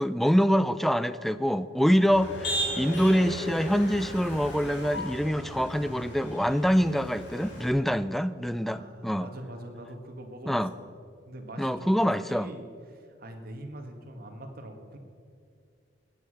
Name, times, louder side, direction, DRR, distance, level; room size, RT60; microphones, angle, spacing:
voice 1, 0.0-9.3 10.5-10.7 11.6-12.5, equal, ahead, 14 dB, 0.4 m, -25 dB
Motor vehicle (road), 2.1-7.7, equal, 80° left, 3.1 m, -36 dB
voice 2, 8.6-10.9 11.2-15.0, right 1 dB, 55° right, 4 dB, 1.8 m, -43 dB
19.0 x 8.7 x 6.4 m, 2.4 s
head